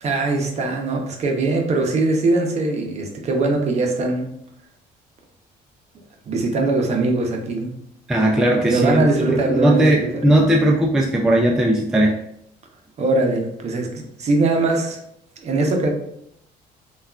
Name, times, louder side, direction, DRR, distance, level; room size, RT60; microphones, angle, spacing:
voice 1, 0.0-4.3 6.3-7.7 8.4-9.9 10.1-10.2 13.0-13.9 14.2-15.0 15.4-15.9, right 2 dB, 40° right, 2 dB, 0.6 m, -21 dB
voice 2, 8.1-12.2, right 1 dB, 5° right, -1 dB, 0.3 m, -18 dB
3.4 x 2.3 x 2.3 m, 0.73 s
cardioid pair, 110°, 17 cm